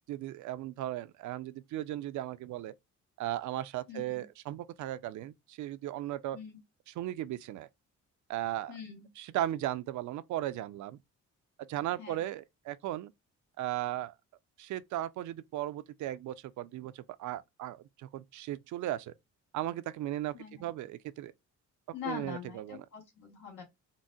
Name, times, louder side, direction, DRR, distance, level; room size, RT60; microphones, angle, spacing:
voice 1, 0.1-2.7 3.2-6.4 7.0-7.7 8.3-8.7 9.2-11.0 11.7-13.1 13.6-14.1 14.6-19.1 19.5-21.3 22.0-22.8, right 13 dB, 75° right, 0.5 m, -36 dB
voice 2, 3.9-4.2 6.3-6.6 8.7-9.1 12.0-12.3 20.3-20.7 21.9-23.6, left 7 dB, 85° left, 2.1 m, -43 dB
3.9 x 2.1 x 2.3 m
cardioid pair, 90°, 30 cm